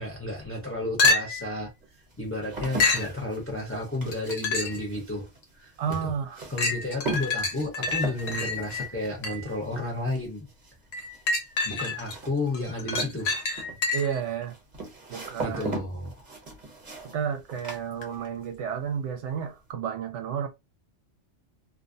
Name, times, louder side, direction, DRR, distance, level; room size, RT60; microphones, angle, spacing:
voice 1, 0.0-1.7 2.2-5.3 5.5-6.1 6.5-10.5 11.6-13.4 15.4-16.2, left 2 dB, 15° left, 0.7 m, -32 dB
sound 1, 0.6-0.7 1.4-18.5 18.8-19.4, right 3 dB, 40° right, 1.0 m, -40 dB
sound 2, 1.0-1.6 2.8-3.1 4.1-4.9 5.4-5.5 6.6-9.6 10.9-12.2 12.5-14.2 18.0-18.1, left 3 dB, 85° left, 1.1 m, -27 dB
voice 2, 5.8-6.4 13.9-14.5 15.1-15.8 17.0-20.5, right 7 dB, 75° right, 0.9 m, -31 dB
2.6 x 2.1 x 2.5 m
omnidirectional pair, 1.3 m